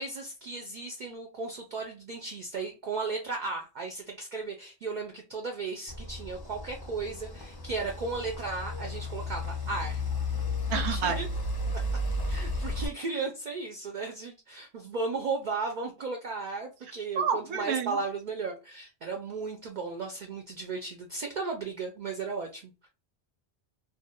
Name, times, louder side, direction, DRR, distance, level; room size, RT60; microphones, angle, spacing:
voice 1, 0.0-10.0 10.7-11.3 11.7-11.9 12.3-22.9, right 4 dB, 60° right, 3 dB, 0.5 m, -35 dB
sound 1, 5.9-12.9, left 2 dB, 35° left, 0.3 m, -33 dB
voice 2, 10.7-11.2 17.2-18.0, right 6 dB, 80° right, 8 dB, 0.9 m, -29 dB
2.4 x 2.1 x 2.8 m, 0.30 s
omnidirectional pair, 1.1 m